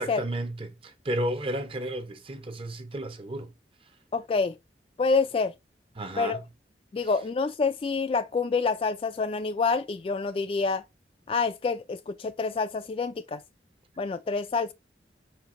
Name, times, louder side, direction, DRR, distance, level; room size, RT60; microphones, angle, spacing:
voice 1, 0.0-3.5 6.0-6.4 6.9-7.1, right 1 dB, 30° right, 0.7 m, -33 dB
voice 2, 4.1-4.6 5.0-5.5 6.2-6.4 6.9-10.8 11.3-13.4 14.0-14.7, left 4 dB, 30° left, 0.3 m, -27 dB
4.6 x 4.5 x 2.5 m
head